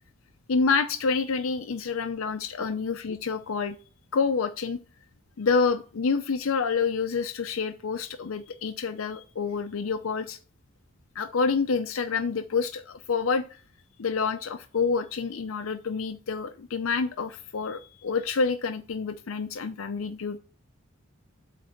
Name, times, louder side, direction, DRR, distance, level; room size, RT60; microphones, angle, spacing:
voice 1, 0.5-3.8 4.1-4.8 5.4-10.4 11.2-13.6 14.0-20.4, left 5 dB, 80° left, 8 dB, 0.6 m, -28 dB
8.3 x 3.3 x 6.4 m, 0.38 s
head